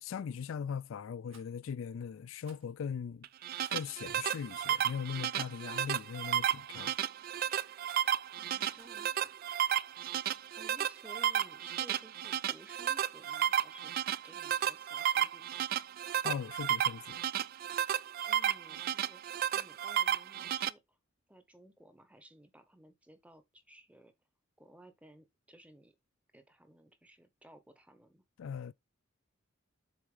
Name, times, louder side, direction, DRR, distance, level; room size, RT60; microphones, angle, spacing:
voice 1, 0.0-3.3 3.7-6.9 16.2-17.2 28.4-28.7, left 7 dB, 75° left, 0.3 m, -39 dB
Rattle, 1.3-1.5 2.4-2.7 3.6-4.0 4.7-4.9 5.8-6.1 6.9-7.2 7.8-8.2 8.8-9.0, right 5 dB, 75° right, 2.3 m, -59 dB
sound 1, 3.2-20.7, right 10 dB, 45° right, 0.3 m, -33 dB
voice 2, 8.4-9.3 10.5-13.9 14.2-15.8 18.2-21.0 21.3-24.1 24.6-26.0 26.3-28.2, right 1 dB, 5° right, 0.9 m, -57 dB
7.2 x 4.3 x 3.2 m
head